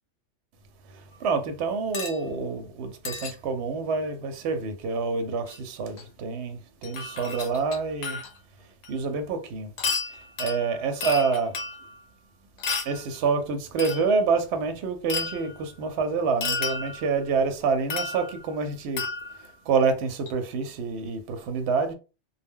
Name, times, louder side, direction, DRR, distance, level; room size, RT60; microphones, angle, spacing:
voice 1, 1.2-6.0 6.2-6.6 6.8-8.2 8.9-9.7 10.4-11.5 12.9-19.0 19.7-21.9, right 4 dB, 70° right, 0.8 m, -27 dB
sound 1, 1.9-2.2 3.0-3.3 5.5-5.6 6.0-6.1 6.8-8.4 8.8-8.9 9.8-12.0 12.6-13.0 13.8-14.2 15.1-15.6 16.4-17.2 17.9-18.5 19.0-19.5 20.3-20.4, left 4 dB, 70° left, 1.0 m, -32 dB
2.1 x 2.1 x 3.5 m
omnidirectional pair, 1.3 m